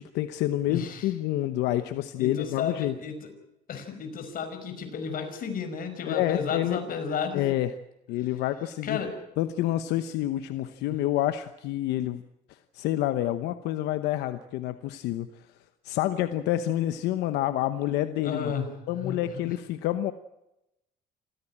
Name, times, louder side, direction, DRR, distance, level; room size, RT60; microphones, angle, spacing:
voice 1, 0.0-3.0 6.1-6.8 7.3-7.7 8.1-9.0 9.4-12.2 12.5-15.5 15.8-18.5 18.9-20.1, left 13 dB, 90° left, 10 dB, 1.0 m, -28 dB
voice 2, 0.7-1.1 2.2-3.3 3.7-7.4 8.8-9.1 10.9-11.0 18.2-18.7 19.0-19.2, left 6 dB, 55° left, 7 dB, 5.3 m, -32 dB
26.5 x 16.0 x 8.8 m, 0.89 s
cardioid pair, 110°, 17 cm